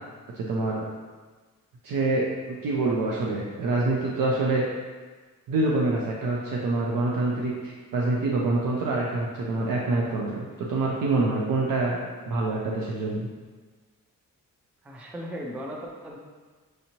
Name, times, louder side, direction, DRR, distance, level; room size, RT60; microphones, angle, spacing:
voice 1, 0.3-0.8 1.8-4.6 5.5-12.0 12.3-13.3, right 2 dB, 75° right, -3 dB, 0.6 m, -26 dB
voice 2, 11.9-12.3 14.8-16.2, equal, 5° right, -1 dB, 0.3 m, -38 dB
6.3 x 2.8 x 2.9 m, 1.4 s
wide cardioid pair, 170°, 34 cm